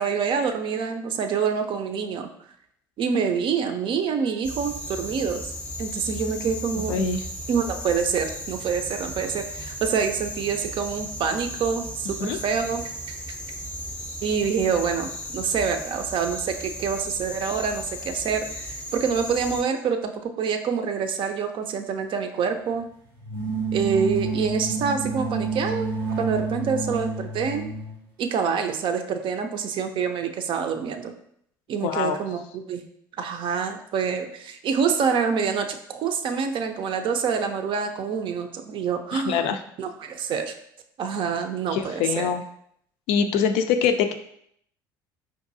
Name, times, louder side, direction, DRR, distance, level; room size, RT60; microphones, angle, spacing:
voice 1, 0.0-2.3 3.0-5.5 5.8-7.0 7.5-13.2 14.2-22.9 23.7-27.6 28.2-31.1 31.7-32.8 33.2-39.5 39.8-40.5 41.0-42.3, right 6 dB, 45° right, 6 dB, 0.5 m, -26 dB
sound 1, 4.4-19.6, left 1 dB, 10° left, 0.7 m, -36 dB
voice 2, 6.9-7.2 12.2-12.4 31.8-32.2 39.1-39.6 41.7-42.4 43.1-44.1, left 6 dB, 60° left, 8 dB, 0.4 m, -23 dB
sound 2, 23.2-28.0, right 3 dB, 85° right, 0.7 m, -29 dB
4.5 x 2.5 x 2.6 m, 0.70 s
figure-of-eight pair, 60°, 11 cm